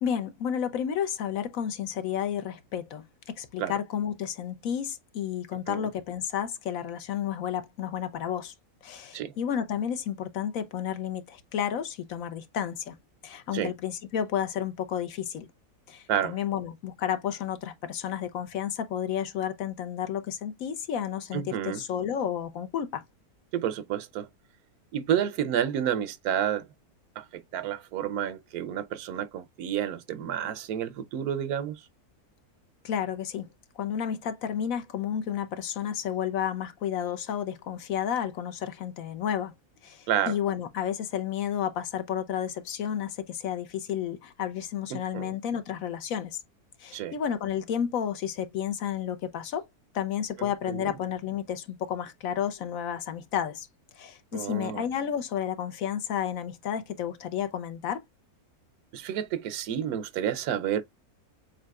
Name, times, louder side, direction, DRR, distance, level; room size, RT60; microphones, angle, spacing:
voice 1, 0.0-8.5 8.8-13.0 13.2-15.5 15.9-23.0 32.8-33.5 33.8-39.5 39.8-46.4 46.8-49.6 49.9-53.7 54.0-58.0, left 9 dB, 65° left, 1.0 m, -31 dB
voice 2, 5.5-5.9 9.1-9.3 13.5-13.7 16.1-16.4 21.3-21.8 23.5-24.3 24.9-26.7 27.2-31.9 40.1-40.4 44.9-45.3 46.9-47.2 50.4-50.9 54.3-54.8 58.9-60.8, right 9 dB, 80° right, 1.1 m, -30 dB
7.4 x 2.7 x 2.3 m
omnidirectional pair, 1.6 m